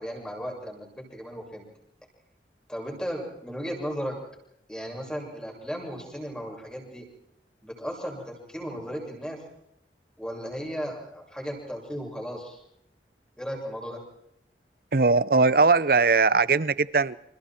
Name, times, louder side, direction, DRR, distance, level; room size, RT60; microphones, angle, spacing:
voice 1, 0.0-1.6 2.7-4.1 4.7-7.1 7.6-9.4 10.2-12.6 13.4-14.0, equal, 5° left, 0 dB, 7.0 m, -35 dB
voice 2, 14.9-17.2, right 4 dB, 55° right, 18 dB, 0.8 m, -20 dB
29.5 x 28.0 x 4.6 m, 0.79 s
head